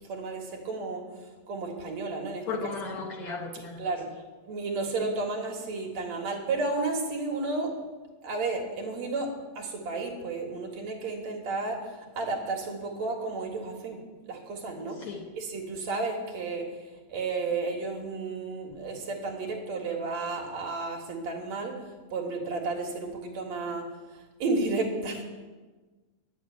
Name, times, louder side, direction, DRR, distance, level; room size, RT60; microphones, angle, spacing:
voice 1, 0.1-1.0 1.5-2.7 3.8-4.1 4.4-7.8 8.2-14.0 14.3-16.7 17.1-21.8 22.1-23.9 24.4-25.2, right 3 dB, 55° right, 0 dB, 2.7 m, -32 dB
voice 2, 2.5-3.8 15.1-15.3, left 4 dB, 70° left, 1 dB, 1.3 m, -35 dB
10.5 x 8.1 x 8.8 m, 1.3 s
omnidirectional pair, 3.9 m